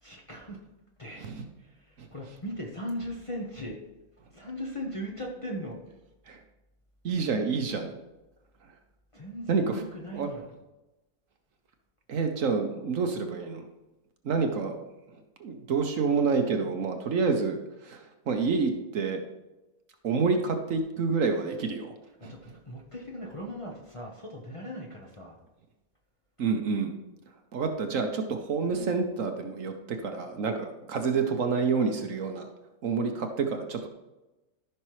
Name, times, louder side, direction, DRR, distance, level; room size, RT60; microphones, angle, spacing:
voice 1, 0.0-0.6 1.0-1.3 1.6-3.8 4.3-5.8 9.1-10.5 22.2-25.4, equal, 25° left, -2 dB, 1.0 m, -38 dB
voice 2, 7.0-7.9 9.5-9.8 10.1-10.3 12.1-13.6 14.2-14.8 15.4-19.2 20.0-21.9 22.2-22.3 26.4-26.9 27.5-32.5 32.8-33.9, right 5 dB, 60° right, 5 dB, 1.2 m, -28 dB
14.0 x 5.8 x 3.2 m, 1.0 s
omnidirectional pair, 1.6 m